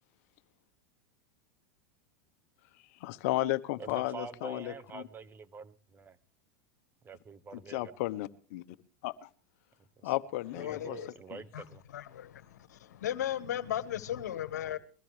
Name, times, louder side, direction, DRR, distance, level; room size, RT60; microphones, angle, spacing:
voice 1, 3.0-5.0 7.7-8.6 9.0-9.3 10.0-11.0 11.3-11.4, left 17 dB, 65° left, 1.0 m, -34 dB
voice 2, 3.8-6.2 7.0-7.9 10.0-10.1 10.5-11.8, right 5 dB, 25° right, 1.0 m, -46 dB
voice 3, 10.6-11.1 11.5-11.6 11.9-14.8, left 11 dB, 85° left, 1.4 m, -36 dB
22.0 x 15.5 x 3.3 m
hypercardioid pair, 105°, 9 cm